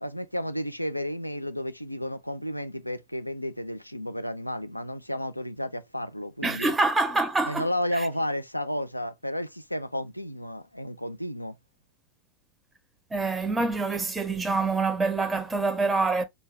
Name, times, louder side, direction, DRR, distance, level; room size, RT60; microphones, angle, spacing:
voice 1, 0.0-6.7 7.5-11.6, left 1 dB, 90° left, 0.3 m, -32 dB
voice 2, 6.4-7.7 13.1-16.2, right 3 dB, 10° right, 0.5 m, -26 dB
3.3 x 2.2 x 3.1 m
figure-of-eight pair, 90°, 0 cm